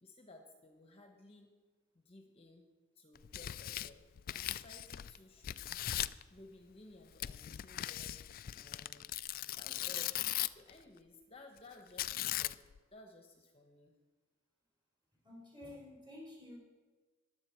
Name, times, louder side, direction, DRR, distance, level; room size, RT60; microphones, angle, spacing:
voice 1, 0.0-1.5 1.9-2.6 2.9-4.0 4.3-8.2 8.5-9.2 9.5-12.6 12.9-13.9, left 2 dB, 30° left, 4 dB, 1.0 m, -57 dB
Tearing, 3.2-5.2 5.4-6.2 7.2-10.7 12.0-12.8, left 13 dB, 45° left, 0.3 m, -39 dB
voice 2, 15.2-16.6, left 1 dB, 25° right, -3 dB, 4.5 m, -51 dB
21.5 x 7.9 x 4.5 m, 1.3 s
head